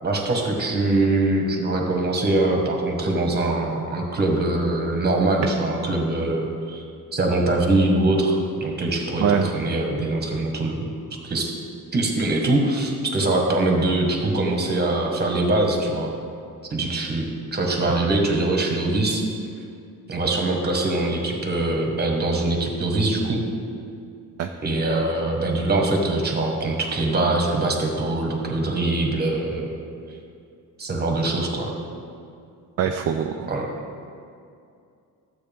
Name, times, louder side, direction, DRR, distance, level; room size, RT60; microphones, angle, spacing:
voice 1, 0.0-6.8 7.1-10.8 11.2-11.5 11.9-16.1 16.7-19.2 20.1-23.4 24.6-29.7 30.8-31.7 33.5-33.7, right 2 dB, 30° right, 1 dB, 1.6 m, -23 dB
voice 2, 32.8-33.5, right 8 dB, 45° right, 5 dB, 0.5 m, -23 dB
12.5 x 8.0 x 3.6 m, 2.4 s
cardioid pair, 120°, 35 cm